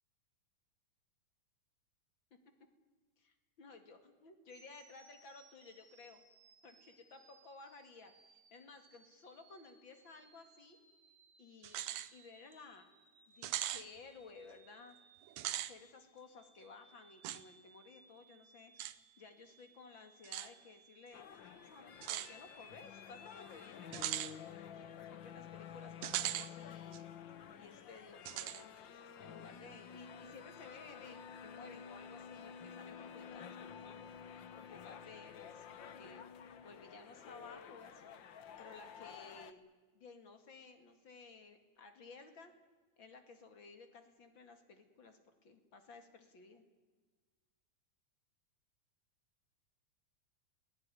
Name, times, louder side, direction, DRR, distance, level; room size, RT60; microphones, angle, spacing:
voice 1, 3.2-6.2 6.6-10.8 11.4-11.8 12.1-12.9 13.3-15.0 15.5-18.7 19.2-21.2 21.6-24.7 25.1-27.1 27.5-28.7 29.2-34.1 34.6-36.2 36.6-38.2 38.6-39.6 39.9-42.5 43.0-46.6, left 4 dB, 40° left, 7 dB, 2.5 m, -56 dB
sound 1, 4.5-23.9, right 4 dB, 40° right, 3.4 m, -66 dB
sound 2, 11.6-12.1 12.5-12.6 13.4-13.8 15.3-15.7 17.2-17.4 18.8-18.9 20.2-20.5 22.0-22.3 23.9-24.3 26.0-26.5 26.9-27.0 28.3-28.6, right 13 dB, 70° right, 1.8 m, -39 dB
sound 3, 21.1-39.5, left 8 dB, 70° left, 1.1 m, -51 dB
22.5 x 17.0 x 9.9 m, 1.4 s
omnidirectional pair, 3.6 m